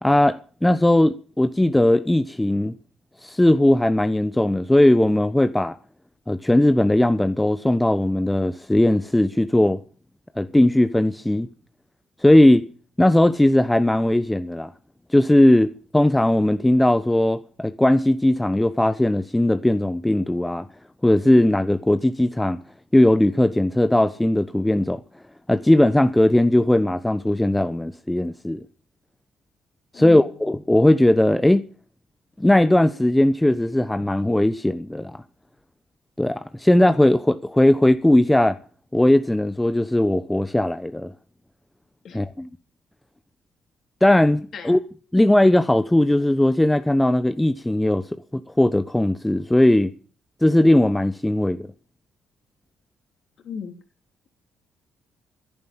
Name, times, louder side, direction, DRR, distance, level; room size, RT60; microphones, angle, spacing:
voice 1, 0.0-2.7 3.2-5.8 6.3-9.8 10.4-11.5 12.2-12.7 13.0-14.7 15.1-20.7 21.0-22.6 22.9-25.0 25.5-28.6 29.9-31.6 32.4-35.2 36.2-38.6 38.9-41.1 42.1-42.5 44.0-44.8 45.1-48.0 48.3-49.9 50.4-51.7, left 1 dB, 10° left, 1.0 m, -18 dB
voice 2, 29.9-30.4 42.0-42.2 44.5-44.8 53.4-53.7, left 6 dB, 60° left, 3.1 m, -35 dB
11.0 x 10.5 x 10.0 m
hypercardioid pair, 50°, 0 cm